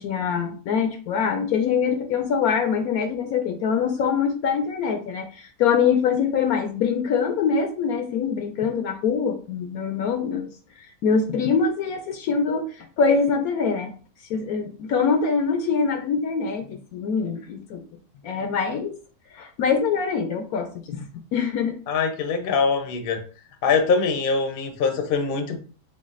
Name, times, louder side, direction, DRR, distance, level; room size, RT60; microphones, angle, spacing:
voice 1, 0.0-10.5 11.0-12.7 13.0-13.9 14.3-17.8 18.2-18.9 19.3-21.1 21.3-21.8, left 6 dB, 70° left, 5 dB, 1.0 m, -24 dB
voice 2, 21.9-23.2 23.6-25.6, left 5 dB, 45° left, 4 dB, 0.7 m, -23 dB
7.0 x 2.4 x 2.5 m, 0.39 s
omnidirectional pair, 1.7 m